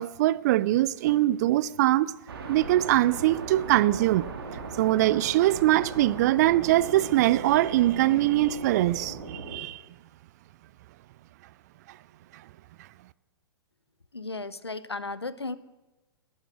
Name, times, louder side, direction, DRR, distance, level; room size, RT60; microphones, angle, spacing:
voice 1, 0.0-2.1 2.5-9.8, right 15 dB, 40° right, 0.5 m, -23 dB
sound 1, 2.3-9.6, right 4 dB, 65° right, 2.5 m, -39 dB
voice 2, 14.1-15.6, left 3 dB, 90° left, 0.8 m, -35 dB
19.5 x 11.0 x 6.0 m
figure-of-eight pair, 110°, 13 cm